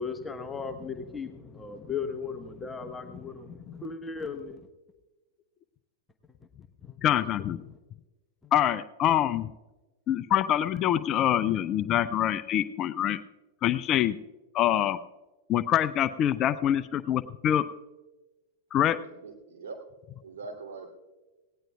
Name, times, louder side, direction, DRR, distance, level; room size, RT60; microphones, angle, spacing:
voice 1, 0.0-4.6 6.8-7.0 8.4-8.5, left 5 dB, 10° left, 6 dB, 1.0 m, -36 dB
voice 2, 7.0-7.6 8.5-9.5 10.1-13.2 13.6-14.2 14.5-15.0 15.5-17.6 18.7-19.0, left 11 dB, 35° left, 13 dB, 0.4 m, -25 dB
voice 3, 19.0-19.8 20.2-20.9, right 4 dB, 65° right, 2 dB, 2.7 m, -42 dB
18.0 x 17.5 x 2.3 m, 1.2 s
figure-of-eight pair, 95°, 0 cm